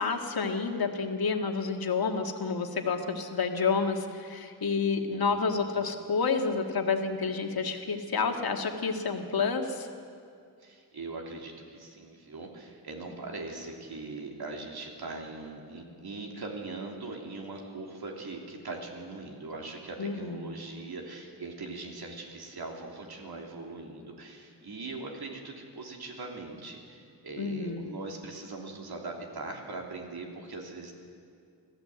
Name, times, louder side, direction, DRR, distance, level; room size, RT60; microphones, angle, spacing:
voice 1, 0.0-9.9 20.0-20.5 27.4-27.9, left 5 dB, 60° left, 4 dB, 2.0 m, -29 dB
voice 2, 5.0-5.6 10.6-30.9, right 3 dB, 65° right, 0 dB, 3.2 m, -41 dB
25.0 x 15.5 x 7.8 m, 2.3 s
wide cardioid pair, 110°, 40 cm